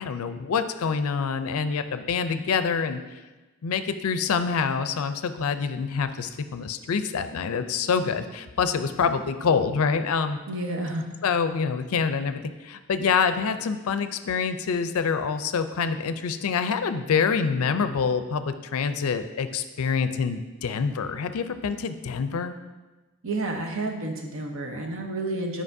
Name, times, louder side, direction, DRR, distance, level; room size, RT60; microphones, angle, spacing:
voice 1, 0.0-3.0 3.6-10.4 11.2-22.5, left 5 dB, 75° left, 10 dB, 0.4 m, -26 dB
voice 2, 10.5-11.0 23.2-25.6, right 2 dB, 65° right, 2 dB, 0.9 m, -30 dB
9.8 x 4.9 x 2.6 m, 1.2 s
head